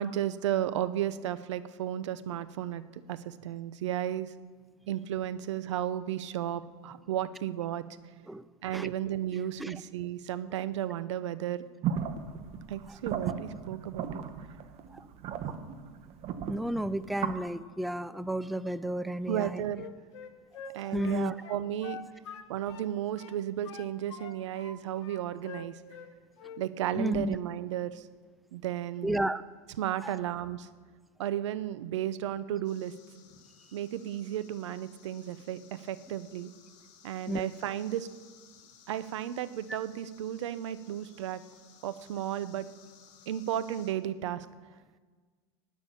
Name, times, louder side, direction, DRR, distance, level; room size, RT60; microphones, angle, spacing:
voice 1, 0.0-4.3 4.9-7.8 8.6-11.6 12.7-14.2 19.3-19.9 20.7-22.0 22.5-25.8 26.6-28.1 28.5-29.3 29.8-30.7 31.2-32.9 33.7-36.5 37.0-38.1 38.9-41.4 41.8-42.7 43.3-44.5, right 11 dB, 85° right, 14 dB, 0.8 m, -34 dB
sound 1, 11.8-17.4, right 8 dB, 45° right, 1.2 m, -36 dB
voice 2, 16.5-19.6 20.8-21.3 27.0-27.4 29.0-29.4 30.0-30.2 37.3-37.5, right 1 dB, ahead, 15 dB, 0.3 m, -32 dB
Wind instrument woodwind instrument, 19.7-22.9 23.2-24.7 25.0-26.1 26.4-26.7, left 6 dB, 85° left, 1.3 m, -45 dB
sound 2, 32.6-43.9, left 8 dB, 60° left, 2.6 m, -59 dB
16.0 x 6.3 x 10.0 m, 1.5 s
supercardioid pair, 120°, 15 cm